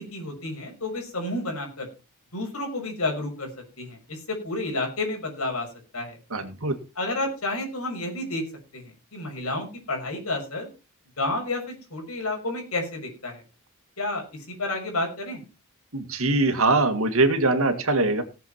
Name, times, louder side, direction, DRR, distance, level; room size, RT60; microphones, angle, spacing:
voice 1, 0.0-1.9 2.3-3.5 3.8-5.7 5.9-6.2 7.0-8.4 8.7-10.7 11.2-13.4 14.0-15.4, left 2 dB, 70° left, 3 dB, 6.2 m, -30 dB
voice 2, 6.3-6.8 15.9-18.2, right 2 dB, 65° right, 8 dB, 2.1 m, -22 dB
18.0 x 7.6 x 4.4 m, 0.30 s
head